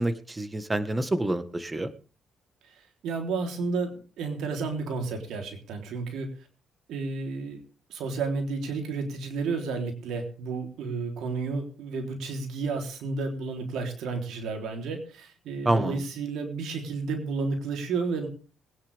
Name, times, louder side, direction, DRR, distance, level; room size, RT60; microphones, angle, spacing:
voice 1, 0.0-1.9 15.6-16.0, right 1 dB, 15° right, 11 dB, 1.6 m, -27 dB
voice 2, 3.0-6.3 6.9-7.6 7.9-18.3, right 4 dB, 80° right, 4 dB, 3.6 m, -31 dB
21.5 x 10.0 x 3.6 m, 0.38 s
cardioid pair, 90°, 0 cm